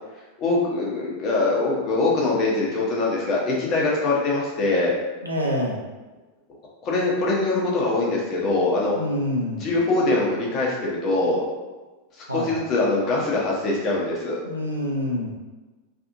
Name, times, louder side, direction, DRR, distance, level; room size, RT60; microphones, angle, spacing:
voice 1, 0.4-4.9 6.8-9.0 9.6-11.4 12.3-14.4, left 2 dB, 35° left, -4 dB, 0.8 m, -23 dB
voice 2, 5.2-5.8 8.9-9.6 12.3-12.5 14.4-15.4, left 1 dB, 85° right, -3 dB, 0.6 m, -26 dB
2.6 x 2.5 x 2.5 m, 1.2 s
figure-of-eight pair, 90°, 0 cm